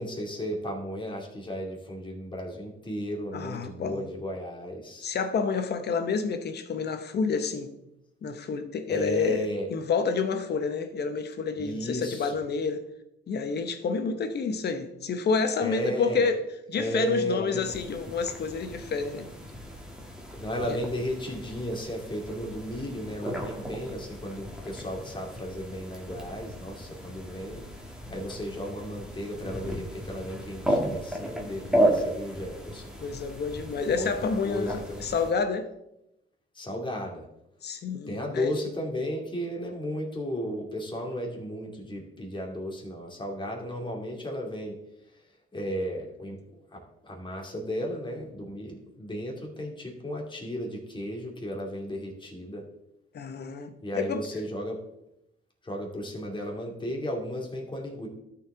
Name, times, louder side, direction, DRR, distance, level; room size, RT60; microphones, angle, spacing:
voice 1, 0.0-5.1 8.9-9.7 11.6-12.3 15.6-16.3 16.8-17.7 20.4-32.9 34.0-35.1 36.5-37.2 38.1-44.8 45.5-52.6 53.8-54.8 55.6-58.1, equal, 25° left, 0 dB, 2.5 m, -34 dB
voice 2, 3.3-4.1 5.0-7.7 8.2-12.8 13.3-16.4 16.7-19.3 20.7-20.8 33.0-35.7 37.6-38.5 53.1-54.2, left 5 dB, 55° left, 8 dB, 1.0 m, -29 dB
sound 1, 17.6-35.3, right 1 dB, 5° right, 1.8 m, -34 dB
12.5 x 4.7 x 3.8 m, 0.84 s
cardioid pair, 90°, 20 cm